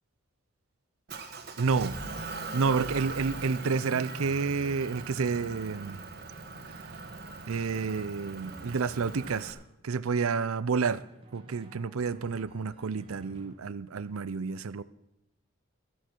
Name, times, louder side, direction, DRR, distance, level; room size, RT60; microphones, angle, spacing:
Motor vehicle (road) / Engine, 1.1-9.5, right 3 dB, 50° right, 1.4 m, -41 dB
voice 1, 1.6-2.0 2.5-6.1 7.5-11.0 11.3-14.8, right 5 dB, 80° right, 0.5 m, -30 dB
Drum, 8.4-9.9 11.0-14.0, right 1 dB, 25° right, 1.4 m, -53 dB
13.5 x 13.0 x 4.5 m
head